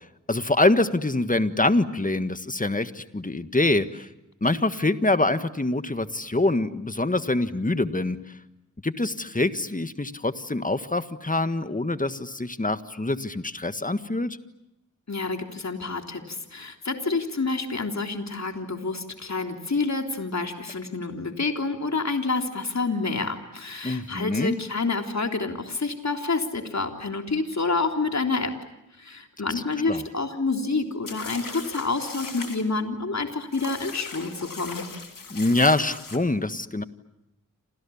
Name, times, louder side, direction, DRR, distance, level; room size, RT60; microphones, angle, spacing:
voice 1, 0.3-4.1 4.4-8.2 8.8-14.4 23.8-24.6 29.9-30.0 35.3-36.8, left 2 dB, 25° left, 11 dB, 1.6 m, -25 dB
voice 2, 15.1-28.5 29.0-34.8, left 3 dB, 55° left, 4 dB, 3.5 m, -28 dB
sound 1, 31.1-32.6 33.5-36.2, left 4 dB, 85° left, 3.3 m, -38 dB
29.5 x 27.0 x 7.2 m, 0.88 s
wide cardioid pair, 65°, 32 cm